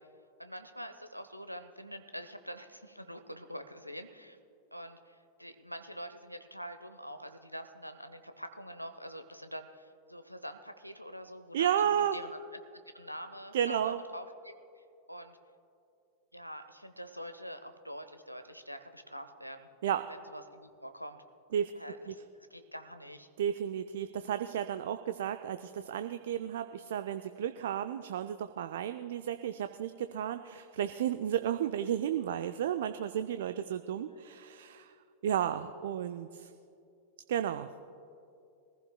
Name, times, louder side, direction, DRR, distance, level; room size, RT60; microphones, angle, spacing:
voice 1, 0.4-4.4 4.7-12.4 12.9-15.4 16.3-19.7 20.1-21.2 21.7-23.3, equal, 90° left, 9 dB, 0.7 m, -45 dB
voice 2, 11.5-12.2 13.5-14.0 19.8-20.0 21.5-21.7 22.1-22.2 23.4-34.9 35.2-36.5 37.3-37.7, right 10 dB, 60° right, 10 dB, 0.4 m, -33 dB
23.5 x 15.0 x 2.2 m, 2.5 s
figure-of-eight pair, 90°, 0 cm